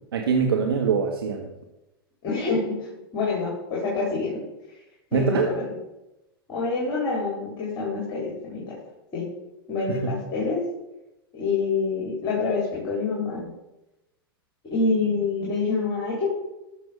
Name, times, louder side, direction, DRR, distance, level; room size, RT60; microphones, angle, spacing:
voice 1, 0.1-1.5 5.1-5.5 9.9-10.2, right 6 dB, 75° right, 2 dB, 1.6 m, -23 dB
voice 2, 2.2-4.4 5.1-5.6 6.5-8.7 9.1-9.2 9.7-10.6 11.3-13.5 14.7-16.3, left 4 dB, 40° left, -4 dB, 4.9 m, -26 dB
14.5 x 6.9 x 5.5 m, 0.95 s
hypercardioid pair, 100°, 13 cm